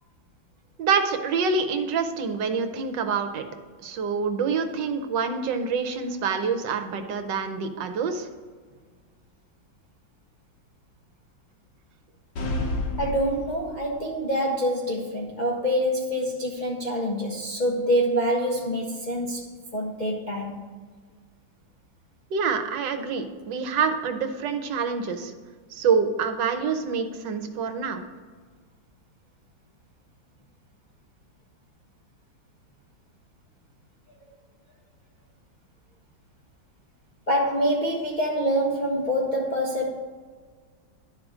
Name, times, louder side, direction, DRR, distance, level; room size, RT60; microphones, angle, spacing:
voice 1, 0.8-3.4 3.8-8.3 22.3-25.3 25.7-28.0, right 5 dB, 75° right, 7 dB, 1.4 m, -26 dB
sound 1, 12.4-14.0, left 1 dB, 85° left, 1.9 m, -30 dB
voice 2, 13.0-19.5 19.7-20.6 37.3-39.9, equal, 40° left, -4 dB, 0.7 m, -26 dB
11.0 x 3.8 x 6.1 m, 1.5 s
omnidirectional pair, 2.0 m